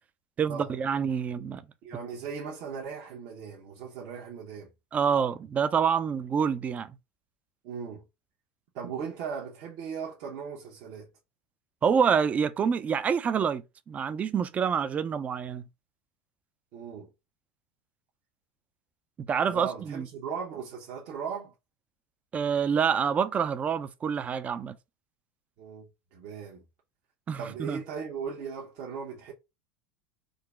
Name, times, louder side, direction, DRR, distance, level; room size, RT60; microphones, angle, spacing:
voice 1, 0.4-1.6 4.9-7.0 11.8-15.7 19.2-20.1 22.3-24.8 27.3-27.8, right 7 dB, 25° right, 0.4 m, -27 dB
voice 2, 1.8-4.7 7.6-8.0 8.7-11.1 16.7-17.1 19.5-21.5 25.6-25.8 26.1-26.6 27.4-29.3, right 6 dB, 60° right, 0.9 m, -38 dB
3.8 x 2.0 x 3.4 m
supercardioid pair, 115°, 5 cm